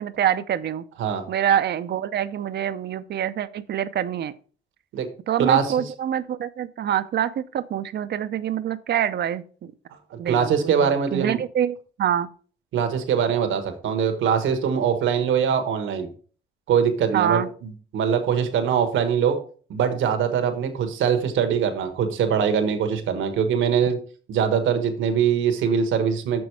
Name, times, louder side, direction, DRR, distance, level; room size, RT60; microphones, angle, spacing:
voice 1, 0.0-0.8 1.3-4.3 5.3-9.7 10.2-12.3 17.1-17.5, right 10 dB, 55° right, 12 dB, 0.6 m, -25 dB
voice 2, 5.4-5.7 10.1-11.4 12.7-16.1 16.7-19.4 19.7-24.0 24.3-26.4, right 7 dB, 80° right, 7 dB, 1.3 m, -22 dB
6.2 x 6.1 x 4.7 m, 0.42 s
cardioid pair, 90°, 20 cm